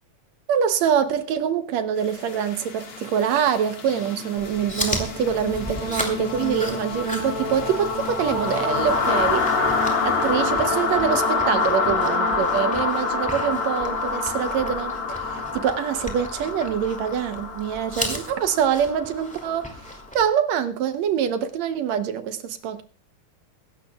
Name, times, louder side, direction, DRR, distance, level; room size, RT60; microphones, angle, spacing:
voice 1, 0.5-9.5 10.0-19.7 20.1-22.8, right 8 dB, 70° right, 2.0 m, -25 dB
sound 1, 2.1-19.9, left 4 dB, 50° left, 2.6 m, -27 dB
Chewing mastication, 4.4-20.2, equal, 5° left, 1.8 m, -36 dB
23.5 x 12.0 x 2.3 m
omnidirectional pair, 3.4 m